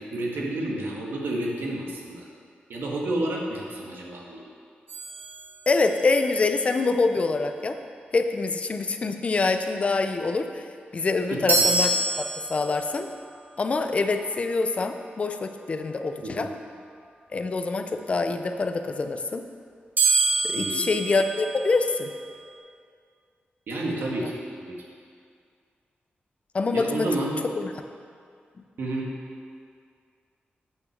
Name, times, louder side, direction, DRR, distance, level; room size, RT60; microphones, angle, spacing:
voice 1, 0.0-2.2 2.7-4.4 11.3-11.6 16.2-16.5 20.5-21.0 23.7-24.3 24.6-24.8 26.7-27.4 28.8-29.1, right 1 dB, 80° right, -2 dB, 1.6 m, -30 dB
sound 1, 4.9-6.2 11.5-13.0 20.0-22.1, right 2 dB, 65° right, 2.5 m, -26 dB
voice 2, 5.7-7.8 8.1-10.6 10.9-13.1 13.6-16.5 17.3-19.4 20.5-22.1 26.5-27.1 27.6-27.7, left 3 dB, 35° left, 7 dB, 0.5 m, -25 dB
8.6 x 6.0 x 6.4 m, 2.2 s
wide cardioid pair, 170°, 4 cm